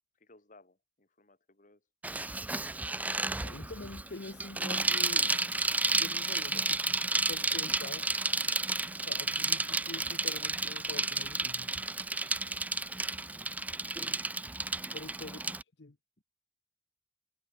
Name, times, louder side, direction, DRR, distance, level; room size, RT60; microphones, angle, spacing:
voice 1, 0.2-1.8 12.6-13.0 14.8-15.0, left 2 dB, 45° left, 4.4 m, -61 dB
Bicycle, 2.0-15.6, right 2 dB, 10° right, 0.5 m, -32 dB
voice 2, 3.4-5.3 5.9-8.1 9.0-11.8 14.9-16.0, left 3 dB, 80° left, 1.0 m, -45 dB
head